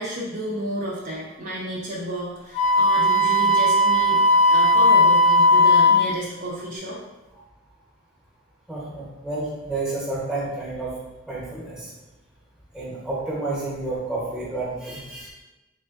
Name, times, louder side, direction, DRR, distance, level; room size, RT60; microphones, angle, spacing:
voice 1, 0.0-7.0, equal, 40° right, -4 dB, 0.5 m, -31 dB
Wind instrument woodwind instrument, 2.5-6.1, left 1 dB, 35° left, 0.4 m, -17 dB
voice 2, 8.7-11.0 11.3-11.9 12.7-15.3, right 2 dB, 5° right, -6 dB, 0.8 m, -30 dB
3.6 x 3.3 x 2.4 m, 1.1 s
head